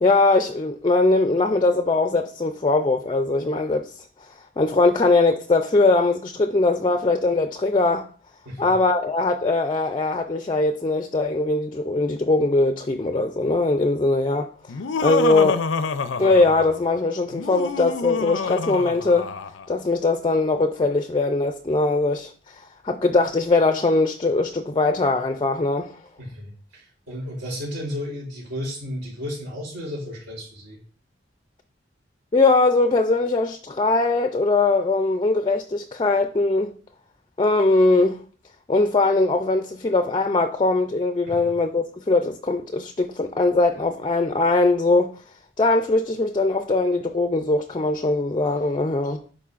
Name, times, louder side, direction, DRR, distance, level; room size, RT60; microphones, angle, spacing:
voice 1, 0.0-4.0 4.6-8.1 8.6-14.5 15.0-15.6 16.2-19.3 19.7-25.9 32.3-36.7 37.4-38.2 38.7-45.1 45.6-49.2, left 3 dB, 25° left, 0.3 m, -21 dB
Laughter, 14.7-16.8 17.3-19.7, left 5 dB, 85° left, 0.5 m, -27 dB
voice 2, 26.2-30.8 41.2-41.5, left 1 dB, 85° right, 3.4 m, -33 dB
10.0 x 4.3 x 2.5 m
head